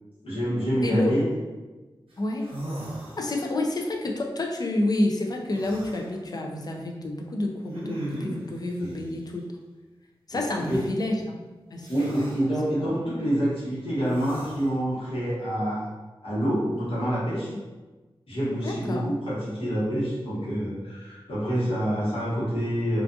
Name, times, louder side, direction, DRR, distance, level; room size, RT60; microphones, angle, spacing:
voice 1, 0.2-1.3 8.8-8.9 10.3-10.8 11.9-15.9 16.2-17.5 18.3-23.0, equal, 80° left, -9 dB, 1.2 m, -27 dB
voice 2, 0.8-1.2 2.2-2.5 3.2-9.5 10.3-11.4 11.7-12.3 12.8-12.9 18.6-19.0, left 1 dB, 45° left, 1 dB, 0.4 m, -29 dB
sound 1, 2.1-2.2 2.4-3.7 5.5-6.1 7.7-8.5 10.6-10.9 11.8-12.4 14.0-14.8, right 1 dB, 80° right, 0.7 m, -37 dB
2.5 x 2.4 x 2.5 m, 1.2 s
wide cardioid pair, 70°, 9 cm